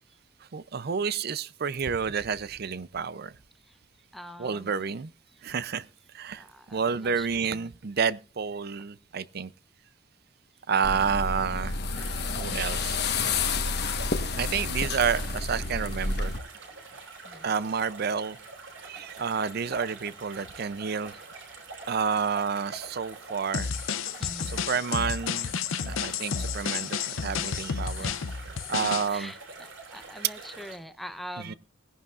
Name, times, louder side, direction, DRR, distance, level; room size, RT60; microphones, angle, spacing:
voice 1, 0.5-3.4 4.4-5.1 5.4-5.9 6.1-6.4 6.7-9.5 10.7-13.0 14.3-16.3 17.4-18.4 18.8-21.2 21.9-23.7 24.4-25.5 25.8-28.2 28.7-29.3 30.2-30.3 31.4-31.5, right 6 dB, 50° right, 0.5 m, -30 dB
voice 2, 4.1-4.9 6.3-7.7 17.2-17.5 24.2-24.7 28.0-28.2 29.1-31.5, equal, ahead, 0.7 m, -44 dB
sound 1, 10.8-16.4, left 4 dB, 55° left, 1.2 m, -30 dB
sound 2, 11.9-30.8, right 3 dB, 65° right, 5.5 m, -45 dB
sound 3, 23.5-29.1, left 7 dB, 80° left, 0.6 m, -31 dB
20.0 x 11.0 x 2.5 m
head